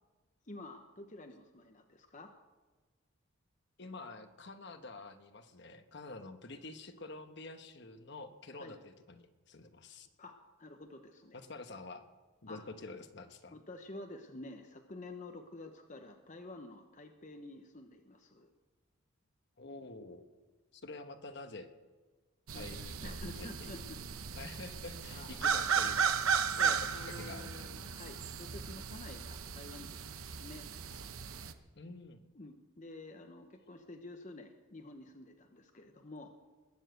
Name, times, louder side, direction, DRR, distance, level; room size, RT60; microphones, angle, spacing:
voice 1, 0.4-2.3 8.6-8.8 10.2-11.4 12.5-12.6 13.5-18.5 22.5-24.0 25.1-25.3 26.6-30.7 32.3-36.3, left 2 dB, 35° left, 5 dB, 0.9 m, -49 dB
voice 2, 3.8-10.1 11.3-12.1 12.4-13.6 19.6-20.3 20.7-21.7 22.5-23.8 24.3-27.7 31.7-32.2, left 3 dB, 55° left, 8 dB, 1.1 m, -48 dB
sound 1, 22.5-31.5, right 6 dB, 85° right, 0.9 m, -35 dB
20.5 x 7.3 x 7.9 m, 1.3 s
head